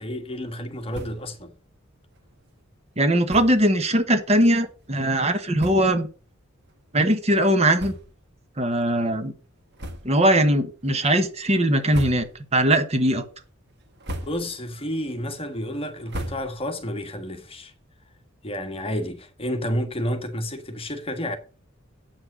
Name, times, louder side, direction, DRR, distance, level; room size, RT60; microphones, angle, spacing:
voice 1, 0.0-1.5 14.2-17.7 18.4-21.4, equal, 30° left, 1.4 m, -30 dB
sound 1, 0.9-1.4 1.7-1.8 2.1-2.2 3.2-3.7 4.4-4.5 5.2-5.3 5.5-6.1 6.6-6.8 7.7-8.4 8.7-8.9 9.7-10.3 10.8-11.2 11.7-12.6 13.0-13.4 13.8-14.7 15.0-16.9, equal, 55° right, 1.8 m, -38 dB
voice 2, 3.0-6.1 6.9-7.9 8.6-9.3 10.0-13.3, right 1 dB, 30° right, 1.2 m, -20 dB
8.7 x 6.1 x 6.2 m
head